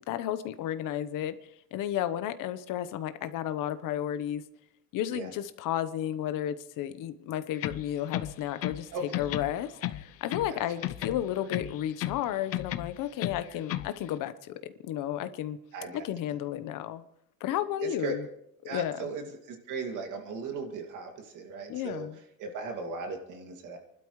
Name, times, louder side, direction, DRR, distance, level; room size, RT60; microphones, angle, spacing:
voice 1, 0.1-1.4 1.7-4.4 4.9-8.9 9.2-15.6 15.9-17.0 17.4-18.2 18.6-19.1 21.7-22.1, left 11 dB, 60° left, 1.1 m, -33 dB
sound 1, 7.5-8.9 9.1-10.6 10.8-12.2 12.5-13.9, left 13 dB, 40° left, 0.6 m, -34 dB
voice 2, 8.9-9.3 10.5-10.6 15.7-16.1 17.8-18.2 18.7-22.1 22.4-23.8, right 3 dB, 55° right, 2.5 m, -37 dB
29.0 x 12.0 x 3.2 m
cardioid pair, 155°, 36 cm